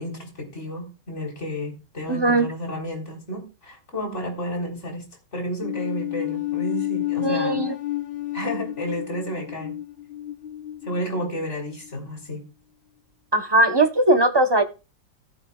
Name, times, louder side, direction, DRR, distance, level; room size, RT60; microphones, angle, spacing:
voice 1, 0.0-5.0 5.3-7.6 8.3-9.8 10.8-12.4, equal, 35° left, 1 dB, 4.1 m, -31 dB
voice 2, 2.1-2.5 7.2-7.7 13.3-14.6, right 2 dB, 30° right, 6 dB, 0.4 m, -19 dB
sound 1, 5.6-12.0, left 15 dB, 85° left, 0.5 m, -30 dB
14.5 x 13.5 x 2.4 m, 0.31 s
omnidirectional pair, 2.0 m